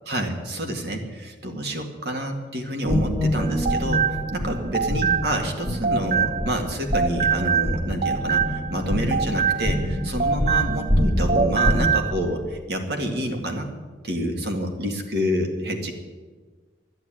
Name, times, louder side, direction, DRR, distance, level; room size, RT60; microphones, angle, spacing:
voice 1, 0.1-13.7 14.0-15.9, equal, 60° right, 4 dB, 2.1 m, -28 dB
sound 1, 2.8-11.9, equal, 25° right, 2.2 m, -26 dB
sound 2, 3.4-6.6 6.9-11.0 11.3-12.1, right 7 dB, 40° right, 0.7 m, -25 dB
11.5 x 11.0 x 9.1 m, 1.4 s
head